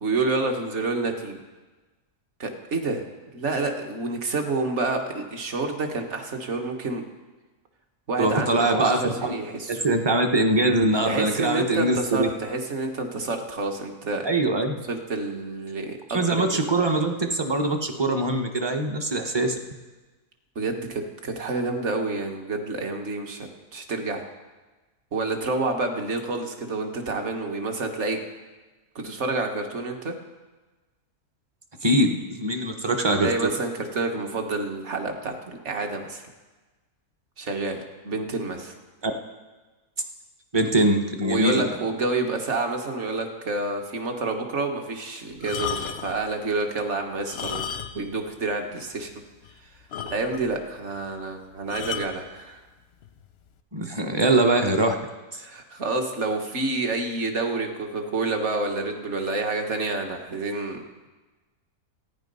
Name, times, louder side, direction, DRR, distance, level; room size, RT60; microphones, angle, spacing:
voice 1, 0.0-1.4 2.4-3.0 3.3-7.0 8.1-9.8 11.0-14.3 14.9-16.9 20.5-24.2 25.1-28.2 28.9-30.1 33.2-36.2 37.4-38.7 41.2-47.7 47.9-49.1 50.1-52.6 55.4-61.1, right 3 dB, 50° right, 4 dB, 1.5 m, -28 dB
voice 2, 8.2-9.4 9.7-12.3 14.2-14.8 16.1-19.6 31.8-33.5 39.0-39.1 40.5-41.6 53.7-54.9 55.3-55.4, right 2 dB, 25° right, 4 dB, 0.7 m, -22 dB
sound 1, 45.4-46.2 47.2-48.2 48.4-48.6 49.1-49.2 49.4-49.5 49.9-50.6 51.7-52.2 53.0-53.3, left 8 dB, 55° left, 0.7 m, -33 dB
14.0 x 9.5 x 5.4 m, 1.2 s
omnidirectional pair, 1.7 m